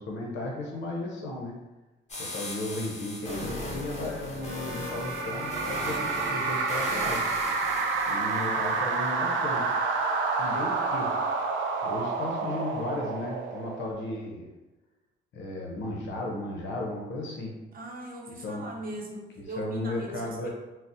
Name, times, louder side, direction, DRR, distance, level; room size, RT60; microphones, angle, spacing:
voice 1, 0.0-1.5 2.2-7.3 8.1-9.7 10.4-11.1 11.8-14.5 15.3-17.5 18.4-18.7 19.4-20.5, left 2 dB, 70° left, -1 dB, 0.7 m, -35 dB
sound 1, 2.1-9.1, left 1 dB, 35° left, 1.0 m, -38 dB
sound 2, 4.5-14.2, right 4 dB, 80° right, 0.4 m, -29 dB
voice 2, 17.7-20.5, right 2 dB, 45° right, -1 dB, 0.7 m, -39 dB
3.9 x 2.0 x 2.6 m, 1.1 s
cardioid pair, 90°, 20 cm